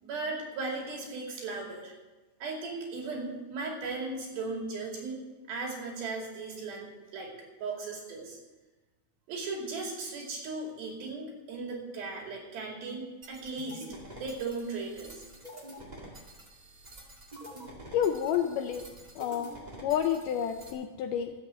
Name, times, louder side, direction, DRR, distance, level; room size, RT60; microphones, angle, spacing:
voice 1, 0.0-1.9 2.4-5.2 5.5-7.3 7.6-8.4 9.3-13.8 14.1-15.2, right 3 dB, 75° right, 0 dB, 4.5 m, -37 dB
sound 1, 13.2-20.7, right 1 dB, 50° right, 0.5 m, -48 dB
voice 2, 17.9-18.9 19.2-19.5 19.8-21.3, left 9 dB, 80° left, 6 dB, 1.9 m, -29 dB
13.5 x 7.6 x 7.9 m, 1.2 s
omnidirectional pair, 4.3 m